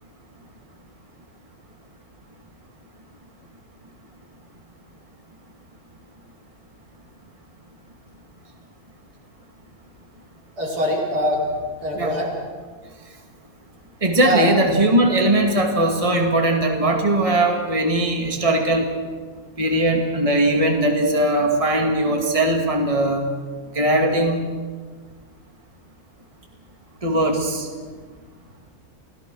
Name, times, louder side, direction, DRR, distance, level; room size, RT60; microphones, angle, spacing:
voice 1, 10.6-11.5 11.8-12.3 14.2-14.5, equal, 85° right, -3 dB, 5.7 m, -23 dB
voice 2, 14.0-18.9 19.6-23.3 23.7-24.4 27.0-27.7, right 1 dB, 20° right, 2 dB, 2.3 m, -19 dB
28.5 x 17.5 x 6.3 m, 1.5 s
omnidirectional pair, 1.6 m